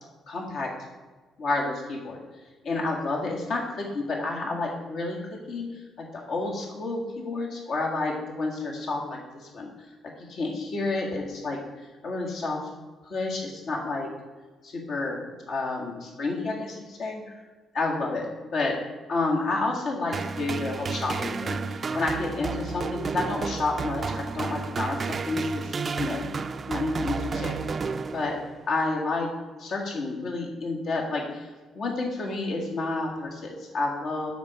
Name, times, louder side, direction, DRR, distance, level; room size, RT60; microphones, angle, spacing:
voice 1, 0.3-0.7 1.4-2.2 2.6-9.7 10.0-11.6 12.0-12.6 13.0-14.1 14.6-17.2 17.7-18.8 19.1-26.2 26.7-27.8 28.1-28.4 28.7-29.3 29.6-31.5 31.7-34.3, left 3 dB, 65° left, -1 dB, 1.9 m, -30 dB
sound 1, 20.1-28.6, right 5 dB, 40° right, 0.4 m, -32 dB
7.2 x 5.6 x 4.9 m, 1.3 s
cardioid pair, 75°, 0 cm